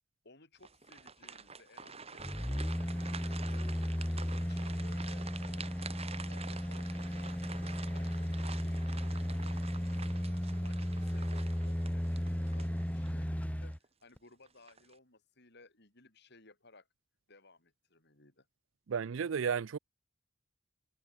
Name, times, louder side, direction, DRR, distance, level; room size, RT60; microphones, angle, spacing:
voice 1, 0.2-3.7 4.4-7.5 7.9-10.2 10.6-16.9 17.3-18.5, left 2 dB, 55° left, 5.6 m, -60 dB
sound 1, 0.6-13.2 13.7-13.9 14.5-14.9, right 5 dB, 30° right, 4.0 m, -48 dB
sound 2, 2.2-13.8 14.2-14.3, equal, 5° left, 0.9 m, -35 dB
voice 2, 18.9-19.8, right 6 dB, 70° right, 0.4 m, -33 dB
head